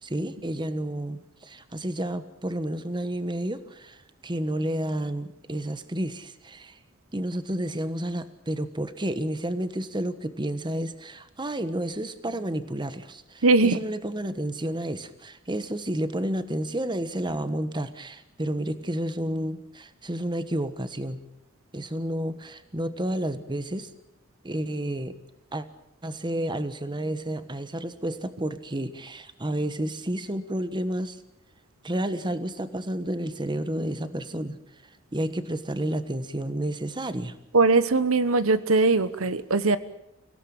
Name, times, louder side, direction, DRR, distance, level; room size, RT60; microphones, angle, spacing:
voice 1, 0.0-6.8 7.1-21.3 21.7-23.9 24.4-25.2 25.5-25.6 26.0-31.2 31.8-34.6 35.1-37.4, right 1 dB, 20° right, 11 dB, 1.3 m, -31 dB
voice 2, 13.4-13.8 37.5-39.8, right 3 dB, 85° right, 13 dB, 1.1 m, -20 dB
25.5 x 17.0 x 8.8 m, 0.85 s
head